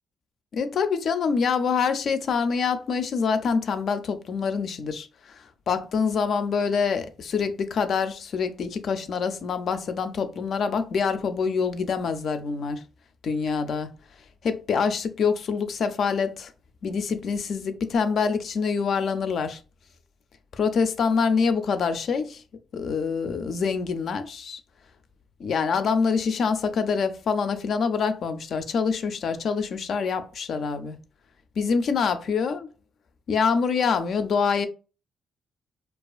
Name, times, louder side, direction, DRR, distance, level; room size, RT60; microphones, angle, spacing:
voice 1, 0.5-12.8 13.2-13.9 14.4-16.5 16.8-19.6 20.5-22.4 22.7-24.6 25.4-31.0 31.6-32.7 33.3-34.7, left 5 dB, 60° left, 0.4 m, -25 dB
2.4 x 2.3 x 2.3 m
cardioid pair, 90°, 0 cm